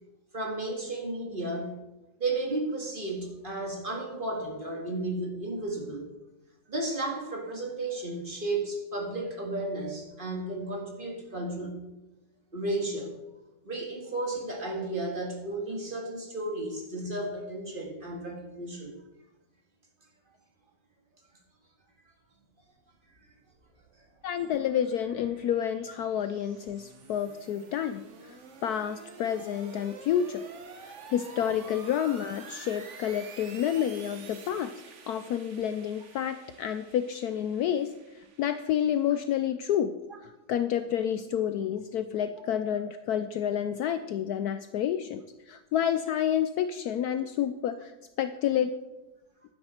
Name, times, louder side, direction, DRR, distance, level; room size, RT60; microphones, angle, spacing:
voice 1, 0.3-1.8 2.2-6.1 6.7-11.8 12.5-13.1 13.6-18.9, right 2 dB, 30° right, 1 dB, 1.9 m, -33 dB
sound 1, 23.4-39.5, right 5 dB, 45° right, 1.2 m, -50 dB
voice 2, 24.2-30.4 30.8-34.7 35.1-47.9 48.2-48.7, left 9 dB, 70° left, 11 dB, 1.0 m, -29 dB
11.5 x 10.0 x 4.3 m, 1.0 s
omnidirectional pair, 1.9 m